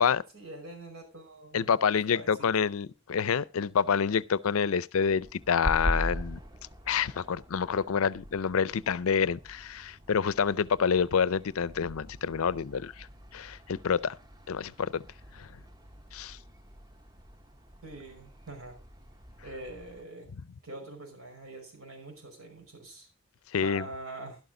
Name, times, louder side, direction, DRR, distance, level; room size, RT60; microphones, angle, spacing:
voice 1, 0.3-1.8 2.1-2.5 17.8-18.8 19.4-20.3 20.6-23.1 23.6-24.4, right 2 dB, 90° right, 5.3 m, -44 dB
voice 2, 1.5-6.4 6.9-13.1 13.3-14.1 14.5-15.0 15.3-15.5 16.1-16.4 23.5-23.8, left 6 dB, 80° left, 0.5 m, -27 dB
sound 1, 5.0-20.0, equal, 20° right, 0.7 m, -41 dB
12.0 x 12.0 x 3.8 m
head